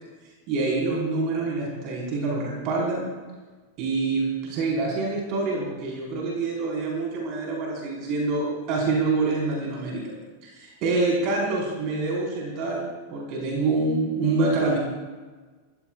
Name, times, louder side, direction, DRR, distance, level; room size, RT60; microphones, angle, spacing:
voice 1, 0.5-3.1 3.8-10.0 10.4-14.8, right 3 dB, 40° right, -3 dB, 5.1 m, -26 dB
26.5 x 15.5 x 2.6 m, 1.3 s
figure-of-eight pair, 90°, 0 cm